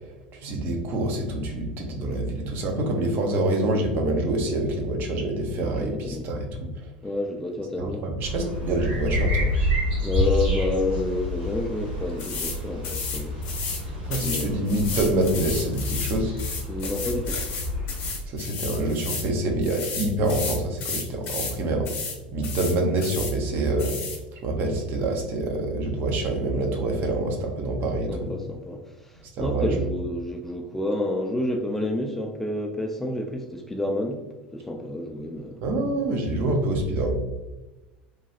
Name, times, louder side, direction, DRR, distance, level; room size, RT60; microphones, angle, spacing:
voice 1, 0.4-6.7 7.8-9.7 14.0-16.3 18.3-21.9 22.3-23.9 24.4-28.3 29.4-29.8 35.6-37.1, right 1 dB, 45° right, 3 dB, 0.6 m, -26 dB
voice 2, 5.6-6.3 7.0-8.0 10.0-13.3 14.2-14.6 16.7-17.4 27.8-34.2 34.5-35.5, left 1 dB, 5° left, 2 dB, 0.3 m, -29 dB
sound 1, 8.2-18.2, equal, 60° right, 1.3 m, -29 dB
sound 2, 12.2-12.6 12.8-13.8 14.1-19.3 19.6-21.6 21.9-22.2 22.4-23.3 23.8-24.2, left 5 dB, 45° left, 0.7 m, -33 dB
3.1 x 2.3 x 2.8 m, 1.1 s
figure-of-eight pair, 75°, 5 cm